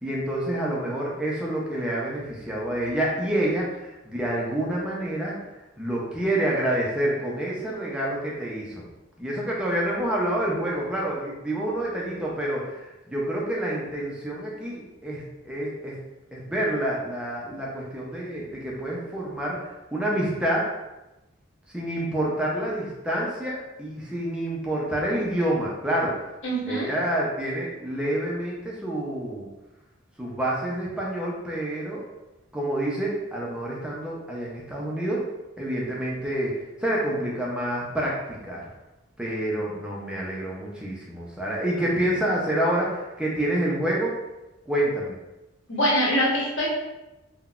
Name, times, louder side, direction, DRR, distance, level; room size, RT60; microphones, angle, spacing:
voice 1, 0.0-5.3 5.8-8.7 9.2-16.0 16.3-19.6 19.9-20.7 21.7-26.1 26.7-29.5 30.2-32.0 32.5-35.3 35.6-38.6 39.2-44.2 44.7-45.1, right 1 dB, 5° right, -5 dB, 0.4 m, -28 dB
voice 2, 26.4-26.9 45.7-46.7, equal, 75° left, -5 dB, 0.9 m, -23 dB
3.7 x 2.1 x 2.3 m, 0.99 s
head